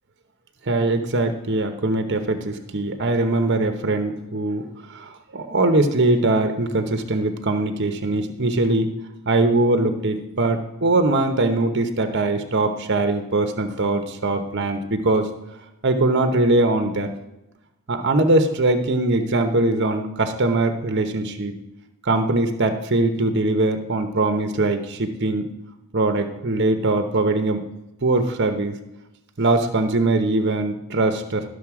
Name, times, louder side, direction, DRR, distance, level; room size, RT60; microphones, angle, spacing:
voice 1, 0.7-4.6 4.9-8.9 9.3-15.3 15.8-17.1 17.9-21.5 22.0-25.5 25.9-27.6 28.0-28.7 29.4-31.4, right 2 dB, 55° right, 7 dB, 0.9 m, -21 dB
12.5 x 6.6 x 4.8 m, 0.93 s
head